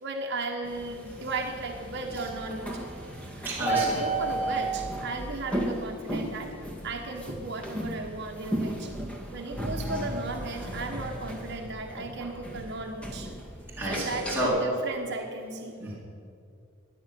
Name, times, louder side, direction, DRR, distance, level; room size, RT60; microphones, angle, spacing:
voice 1, 0.0-2.8 3.2-6.6 6.8-8.9 9.3-13.3 13.8-15.7, right 2 dB, 55° right, 2 dB, 1.3 m, -35 dB
sound 1, 0.6-14.4, right 1 dB, 5° left, 1.9 m, -35 dB
voice 2, 3.4-3.9 13.8-14.5 15.8-15.9, right 1 dB, 10° right, -8 dB, 3.6 m, -30 dB
14.5 x 10.5 x 9.3 m, 2.4 s
head